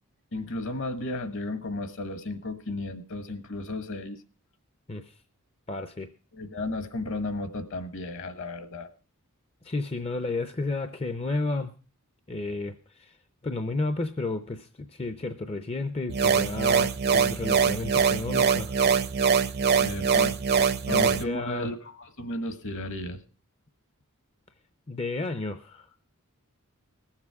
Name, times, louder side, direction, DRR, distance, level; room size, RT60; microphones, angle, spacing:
voice 1, 0.3-4.2 6.3-8.9 19.8-20.3 20.9-23.2, left 2 dB, 60° left, 10 dB, 1.3 m, -34 dB
voice 2, 5.7-6.1 9.6-11.7 12.3-13.2 13.4-18.7 20.9-21.7 24.9-25.9, left 2 dB, 25° left, 9 dB, 0.6 m, -32 dB
sound 1, 16.1-21.2, right 6 dB, 45° right, 0.6 m, -23 dB
20.0 x 7.4 x 4.7 m, 0.36 s
head